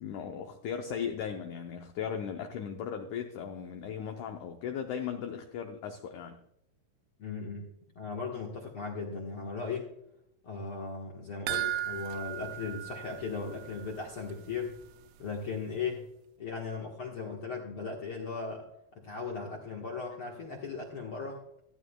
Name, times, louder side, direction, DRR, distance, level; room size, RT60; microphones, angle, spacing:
voice 1, 0.0-6.4, left 7 dB, 80° left, 4 dB, 1.7 m, -37 dB
voice 2, 7.2-7.7 7.9-9.9 10.4-14.8 15.2-16.1 16.4-18.6 18.9-21.4, left 4 dB, 60° left, -1 dB, 1.4 m, -37 dB
sound 1, 11.5-14.0 14.3-14.4 14.8-14.9, right 13 dB, 90° right, 2.6 m, -36 dB
14.0 x 13.0 x 2.3 m, 0.78 s
omnidirectional pair, 4.5 m